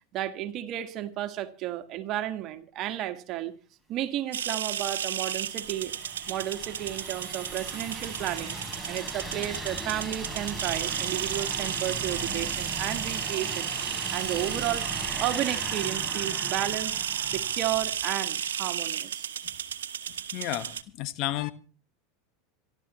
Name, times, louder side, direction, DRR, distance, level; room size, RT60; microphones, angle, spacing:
voice 1, 0.1-3.5 3.9-6.0 6.3-8.6 8.9-13.7 14.1-14.9 15.2-17.0 17.3-19.3, right 13 dB, 50° right, 1.8 m, -33 dB
sound 1, 4.3-20.8, right 9 dB, 80° right, 1.1 m, -33 dB
sound 2, 4.7-18.4, right 2 dB, ahead, 3.4 m, -39 dB
voice 2, 20.3-21.5, left 15 dB, 55° left, 1.3 m, -32 dB
27.0 x 12.0 x 3.1 m
hypercardioid pair, 90°, 0 cm